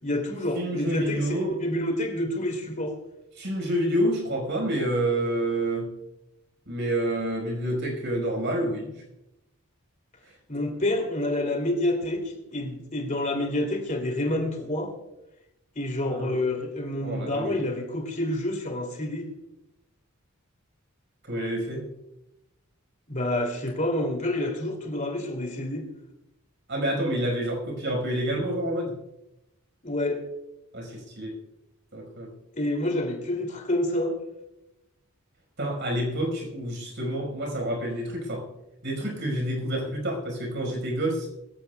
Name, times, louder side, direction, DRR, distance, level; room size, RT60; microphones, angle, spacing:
voice 1, 0.0-1.3 1.6-3.0 10.5-14.9 15.7-19.3 23.1-25.9 29.8-30.2 32.5-34.2, left 1 dB, 35° left, 3 dB, 2.9 m, -28 dB
voice 2, 0.5-1.6 3.4-5.9 6.7-9.0 16.0-16.4 17.0-17.7 21.2-21.9 26.7-28.9 30.7-31.4 31.9-32.3 35.6-38.5 38.8-41.3, right 1 dB, 55° right, 2 dB, 5.2 m, -28 dB
22.5 x 16.0 x 2.4 m, 0.90 s
head